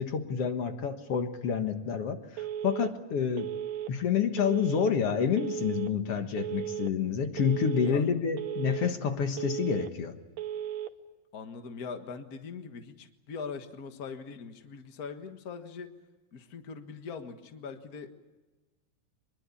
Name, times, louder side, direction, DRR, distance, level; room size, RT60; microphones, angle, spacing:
voice 1, 0.0-3.5 3.9-10.1, left 7 dB, 55° left, 7 dB, 1.8 m, -28 dB
Telephone, 2.4-2.9 3.4-3.9 4.4-4.9 5.4-5.9 6.4-6.9 7.4-7.9 8.4-8.9 9.4-9.9 10.4-10.9, right 10 dB, 70° right, 2.7 m, -35 dB
voice 2, 11.3-15.9 16.3-18.1, left 5 dB, 85° left, 7 dB, 0.8 m, -41 dB
24.0 x 21.5 x 8.5 m, 1.2 s
omnidirectional pair, 4.3 m